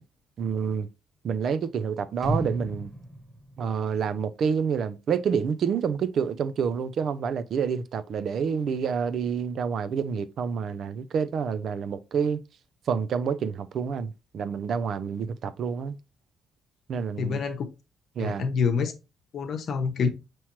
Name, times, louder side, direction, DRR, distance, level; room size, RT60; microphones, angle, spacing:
voice 1, 0.4-0.9 1.2-2.9 3.6-12.4 12.9-16.0 16.9-17.4 18.2-18.4, right 6 dB, 65° right, 0.4 m, -28 dB
sound 1, 2.2-4.4 4.7-4.8, right 1 dB, 10° right, 1.2 m, -34 dB
voice 2, 17.2-17.7 18.2-18.9 19.3-20.1, left 5 dB, 60° left, 0.8 m, -26 dB
5.7 x 3.0 x 3.0 m
cardioid pair, 90°, 0 cm